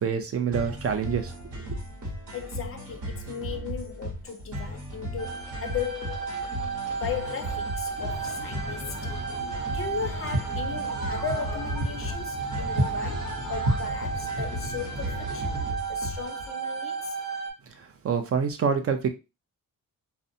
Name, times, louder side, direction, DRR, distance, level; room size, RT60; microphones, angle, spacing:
voice 1, 0.0-1.7 17.8-19.1, right 6 dB, 45° right, 0.4 m, -27 dB
sound 1, 0.5-16.5, equal, 60° right, 1.2 m, -37 dB
voice 2, 2.3-6.3 7.0-9.0 9.7-17.2, left 7 dB, 45° left, 0.4 m, -36 dB
sound 2, 5.2-17.5, right 5 dB, ahead, 0.9 m, -34 dB
sound 3, 8.0-15.7, right 1 dB, 80° right, 0.9 m, -33 dB
2.5 x 2.1 x 2.6 m
wide cardioid pair, 130°, 33 cm